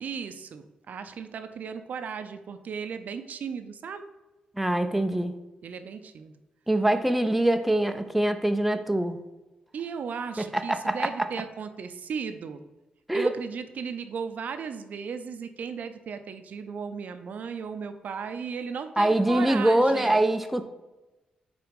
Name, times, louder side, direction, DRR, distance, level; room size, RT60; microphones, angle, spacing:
voice 1, 0.0-4.1 5.6-6.3 9.7-12.6 13.1-20.3, right 6 dB, 65° right, 9 dB, 0.4 m, -36 dB
voice 2, 4.6-5.4 6.7-9.2 10.4-11.1 13.1-13.3 19.0-20.7, right 1 dB, 5° right, 8 dB, 0.4 m, -24 dB
4.7 x 4.1 x 5.0 m, 1.1 s
cardioid pair, 90°, 3 cm